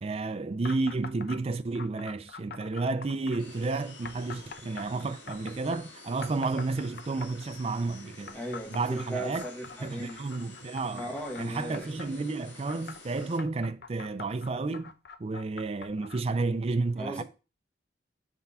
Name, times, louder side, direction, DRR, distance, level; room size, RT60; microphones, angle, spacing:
voice 1, 0.0-8.4 8.7-9.4 9.8-11.1 11.4-14.9 15.2-17.2, right 3 dB, 35° right, 0.4 m, -31 dB
sound 1, 0.6-1.4 1.8-3.4 4.0-5.8 6.2-7.5 8.3-12.1 12.7-16.3, left 5 dB, 60° left, 0.5 m, -45 dB
sound 2, 3.4-13.4, left 3 dB, 85° left, 1.7 m, -50 dB
voice 2, 8.3-10.3 10.9-11.9 17.0-17.2, right 1 dB, 10° left, 1.2 m, -37 dB
5.8 x 3.6 x 5.4 m
head